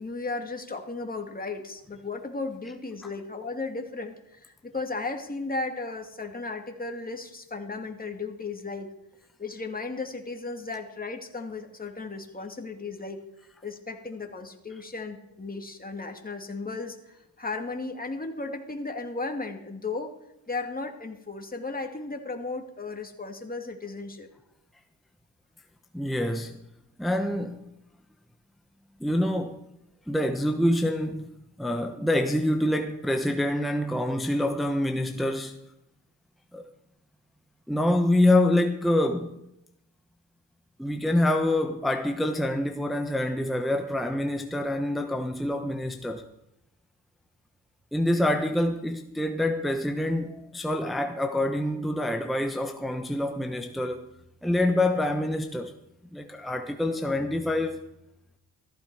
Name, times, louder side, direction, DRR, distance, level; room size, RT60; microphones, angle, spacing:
voice 1, 0.0-8.9 9.4-13.2 13.6-20.1 20.5-24.3, left 3 dB, 20° left, 2.5 m, -35 dB
voice 2, 25.9-26.6 27.0-27.6 29.0-29.6 30.1-31.3 31.6-35.6 36.5-36.7 37.7-39.4 40.8-46.2 47.9-54.1 54.4-55.7 56.1-57.8, left 1 dB, ahead, 1.0 m, -26 dB
14.5 x 14.0 x 4.8 m
cardioid pair, 70°, 43 cm